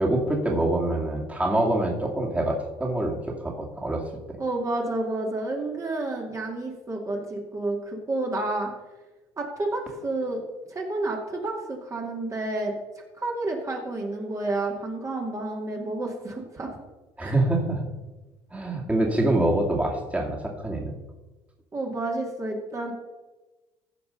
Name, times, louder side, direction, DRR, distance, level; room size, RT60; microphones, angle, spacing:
voice 1, 0.0-4.0 4.3-4.4 17.2-17.9 18.5-21.0, right 1 dB, 10° right, -1 dB, 2.3 m, -25 dB
voice 2, 4.4-8.7 9.4-10.4 10.7-12.7 13.2-16.7 17.2-17.3 21.7-22.9, right 2 dB, 30° right, 0 dB, 2.3 m, -30 dB
15.0 x 5.2 x 5.4 m, 1.1 s
supercardioid pair, 90°, 11 cm